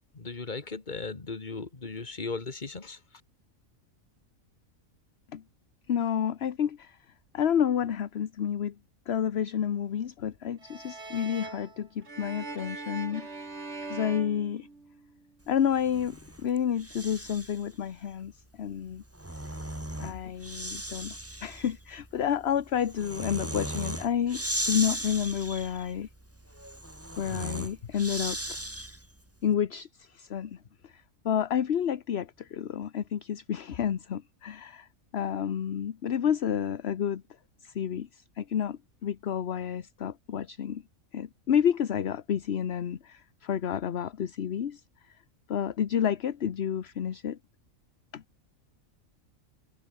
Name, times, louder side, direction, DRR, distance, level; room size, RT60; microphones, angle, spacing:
voice 1, 0.1-3.0, left 4 dB, 35° left, 1.9 m, -37 dB
voice 2, 5.9-7.0 7.3-8.7 9.1-13.3 13.9-14.7 15.5-19.0 20.0-21.2 21.4-26.1 27.2-28.4 29.4-30.6 30.8-34.9 35.1-37.2 37.6-40.8 41.1-44.8 45.5-47.4 48.1-48.2, left 8 dB, 55° left, 1.1 m, -30 dB
sound 1, 10.6-15.2, right 3 dB, 55° right, 3.5 m, -41 dB
Breathing, 15.7-17.7 18.9-29.2, right 1 dB, 10° right, 2.4 m, -37 dB
open air
omnidirectional pair, 1.4 m